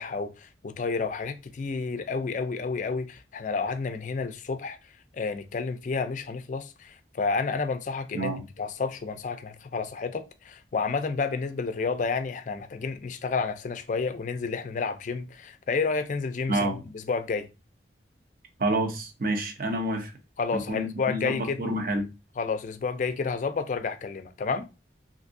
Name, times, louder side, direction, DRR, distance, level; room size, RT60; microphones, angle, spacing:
voice 1, 0.0-4.8 5.1-8.3 8.6-17.5 20.4-21.6 22.4-24.7, left 4 dB, 45° left, 0.4 m, -30 dB
voice 2, 16.5-16.8 18.6-20.1 20.5-22.1, right 1 dB, 55° right, 0.7 m, -28 dB
3.4 x 2.6 x 2.6 m
head